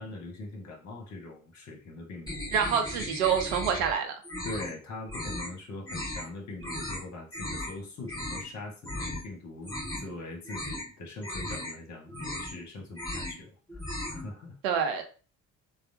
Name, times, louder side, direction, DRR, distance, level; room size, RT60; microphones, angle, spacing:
voice 1, 0.0-2.9 4.4-13.8 14.1-14.6, left 2 dB, 45° left, 0 dB, 1.0 m, -42 dB
sound 1, 2.3-3.9 4.2-4.7 5.1-5.5 5.8-6.2 6.6-7.0 7.3-7.7 8.0-8.5 8.8-9.2 9.6-10.1 10.4-10.9 11.2-11.7 12.1-12.6 12.9-13.4 13.7-14.3, left 1 dB, 10° left, 1.4 m, -36 dB
voice 2, 2.5-4.2 14.6-15.0, right 7 dB, 65° right, 5 dB, 0.5 m, -27 dB
3.2 x 2.0 x 2.6 m, 0.37 s
figure-of-eight pair, 45°, 39 cm